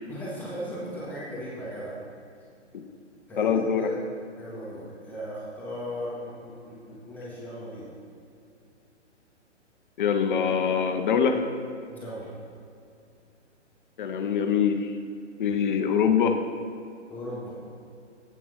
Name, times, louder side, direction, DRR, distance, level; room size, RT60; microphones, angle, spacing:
voice 1, 0.1-2.0 3.3-3.9 4.4-7.9 11.9-12.3 17.1-17.6, equal, 5° left, -9 dB, 2.1 m, -37 dB
voice 2, 3.4-3.9 10.0-11.4 14.0-14.9 15.4-16.4, left 7 dB, 45° left, 7 dB, 0.9 m, -24 dB
8.5 x 7.1 x 5.8 m, 2.5 s
figure-of-eight pair, 130°, 36 cm